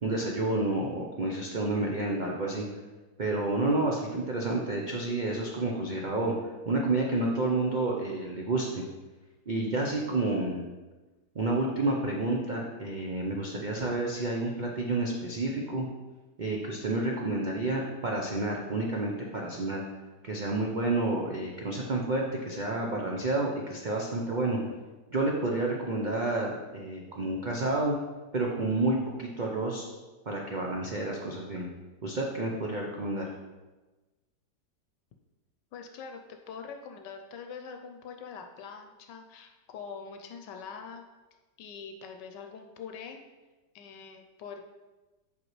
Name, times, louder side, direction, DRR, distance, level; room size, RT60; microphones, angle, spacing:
voice 1, 0.0-2.6 3.2-6.3 6.7-8.8 9.5-10.6 11.3-15.9 16.4-19.8 20.2-24.6 25.1-27.9 28.3-29.9 30.3-31.7 32.0-33.3, right 2 dB, 90° right, -1 dB, 0.4 m, -30 dB
voice 2, 35.7-41.0 41.6-43.2 43.7-44.6, left 6 dB, 85° left, 5 dB, 1.2 m, -44 dB
7.8 x 5.2 x 3.1 m, 1.2 s
omnidirectional pair, 1.9 m